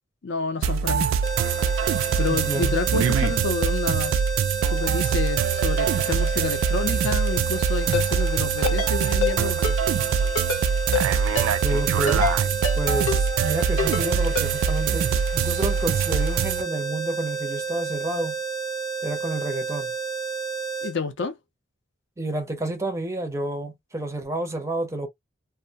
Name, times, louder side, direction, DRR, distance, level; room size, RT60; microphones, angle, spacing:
voice 1, 0.2-1.1 2.2-4.1 4.7-9.8 20.8-21.4, left 4 dB, 65° left, 0.5 m, -29 dB
sound 1, 0.6-16.6, right 7 dB, 85° right, 0.3 m, -24 dB
sound 2, 1.2-20.9, right 5 dB, 25° left, 0.8 m, -31 dB
voice 2, 2.2-2.8 11.5-12.3 12.8-18.4 19.0-19.9 22.2-25.1, right 2 dB, 15° right, 0.5 m, -30 dB
Ringtone, 7.9-8.1 8.6-8.9 9.2-9.3 9.6-9.8 10.4-10.6 10.9-11.1 11.4-11.5 12.1-12.3 12.6-12.8 13.1-13.2 13.8-14.0 14.4-14.5, left 5 dB, 85° left, 0.9 m, -25 dB
2.3 x 2.1 x 2.7 m
head